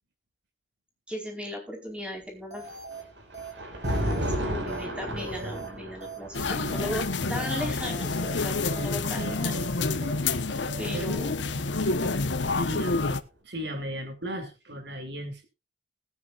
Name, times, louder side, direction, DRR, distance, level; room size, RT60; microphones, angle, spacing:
voice 1, 1.1-2.6 4.2-9.6 10.8-11.4, equal, 5° right, 1 dB, 4.6 m, -37 dB
sound 1, 2.5-3.0 3.3-3.5 3.8-4.4 4.7-4.9 5.2-5.7 6.0-6.2 6.5-7.0 7.3-7.5 7.8-8.4 8.7-8.9 9.2-9.7 10.0-10.2 10.5-10.8, right 3 dB, 40° right, 3.2 m, -41 dB
Thunder, 2.6-9.8 10.9-12.6, equal, 85° right, 5.4 m, -35 dB
sound 2, 6.3-13.2, left 3 dB, 85° left, 1.2 m, -28 dB
voice 2, 10.9-11.4 12.5-15.4, equal, 70° right, 6 dB, 2.9 m, -37 dB
20.0 x 9.6 x 2.5 m, 0.27 s
head